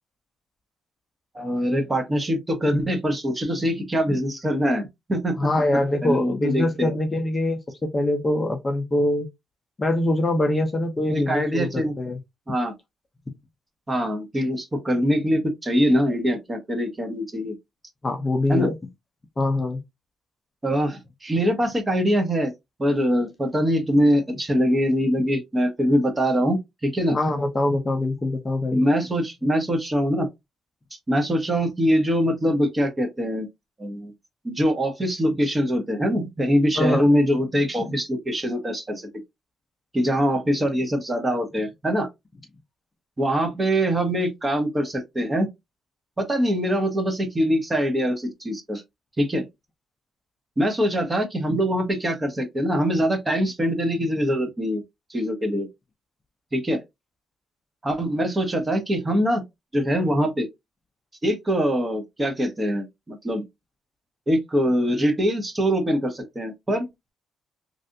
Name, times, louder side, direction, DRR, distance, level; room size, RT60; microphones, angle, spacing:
voice 1, 1.3-5.4 6.0-7.0 11.1-11.9 12.5-12.7 13.9-17.5 18.5-18.7 20.6-22.5 22.8-27.2 28.7-30.3 31.1-33.5 33.8-34.1 34.4-39.1 39.9-42.1 43.2-45.5 46.2-48.8 49.2-49.5 50.6-54.8 55.1-55.7 56.5-56.8 57.8-59.4 59.7-60.5 61.2-63.4 64.3-66.9, equal, 20° right, 1.1 m, -23 dB
voice 2, 5.4-9.3 9.8-12.2 18.0-18.7 19.4-19.8 27.1-28.8 36.8-37.0, left 1 dB, 25° left, 0.7 m, -24 dB
3.3 x 2.5 x 2.7 m
cardioid pair, 90°, 0 cm